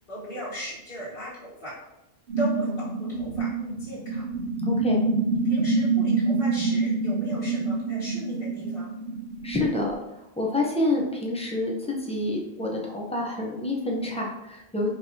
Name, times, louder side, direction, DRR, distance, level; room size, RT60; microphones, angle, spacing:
voice 1, 0.1-1.7 2.4-4.3 5.4-8.9, equal, 60° left, -11 dB, 1.5 m, -37 dB
sound 1, 2.3-9.9, right 3 dB, 65° right, 1.0 m, -26 dB
voice 2, 4.6-5.0 9.4-10.0 10.4-11.7 12.0-14.9, left 2 dB, 10° left, -1 dB, 0.5 m, -27 dB
4.6 x 3.3 x 2.7 m, 0.92 s
omnidirectional pair, 1.1 m